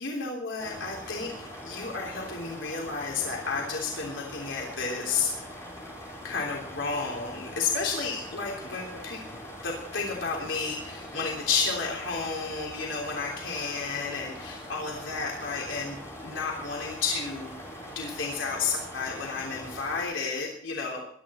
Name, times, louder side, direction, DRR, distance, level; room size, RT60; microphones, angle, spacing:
voice 1, 0.0-1.3 1.6-5.3 6.2-9.2 9.6-17.5 17.9-21.0, left 4 dB, 85° left, -1 dB, 3.3 m, -31 dB
sound 1, 0.6-20.0, equal, 15° left, 5.5 m, -42 dB
21.5 x 12.0 x 4.3 m, 0.65 s
head